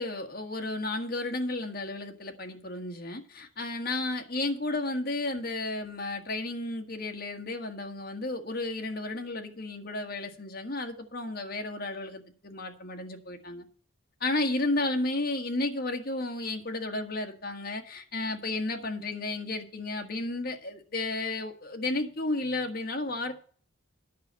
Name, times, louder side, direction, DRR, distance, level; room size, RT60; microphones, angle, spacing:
voice 1, 0.0-13.6 14.2-23.3, left 2 dB, 45° left, 1.5 m, -33 dB
10.0 x 5.8 x 8.1 m
head